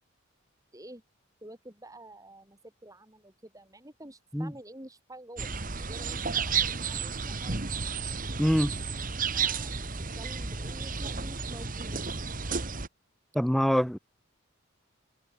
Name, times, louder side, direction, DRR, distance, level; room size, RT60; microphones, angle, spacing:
voice 1, 1.4-5.5 5.8-7.7 9.3-9.8 10.1-12.1, right 1 dB, 15° right, 6.8 m, -49 dB
sound 1, 5.4-12.9, right 5 dB, 40° right, 2.0 m, -32 dB
voice 2, 8.4-8.7 13.3-14.0, equal, ahead, 0.7 m, -24 dB
head